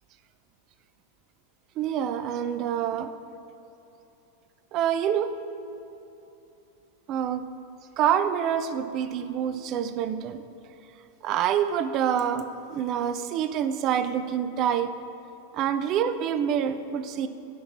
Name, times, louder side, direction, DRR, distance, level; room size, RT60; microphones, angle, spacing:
voice 1, 1.8-3.1 4.7-5.3 5.7-5.8 7.1-7.5 8.0-10.4 11.2-14.9 15.5-17.3, right 9 dB, 35° right, 11 dB, 0.5 m, -26 dB
10.0 x 5.8 x 6.1 m, 2.9 s
figure-of-eight pair, 90°, 0 cm